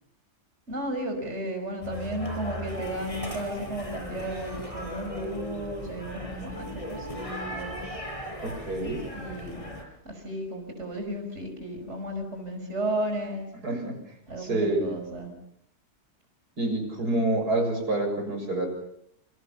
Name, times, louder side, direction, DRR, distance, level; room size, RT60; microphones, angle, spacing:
voice 1, 0.7-7.9 9.1-9.7 10.0-13.5 14.3-15.3, right 1 dB, 45° right, 4 dB, 6.0 m, -34 dB
sound 1, 1.8-9.8, equal, 20° left, 6.0 m, -37 dB
voice 2, 8.4-9.0 13.6-14.0 14.4-14.9 16.6-18.7, right 2 dB, 85° right, 4 dB, 7.6 m, -27 dB
29.0 x 27.5 x 7.1 m, 0.72 s
omnidirectional pair, 1.6 m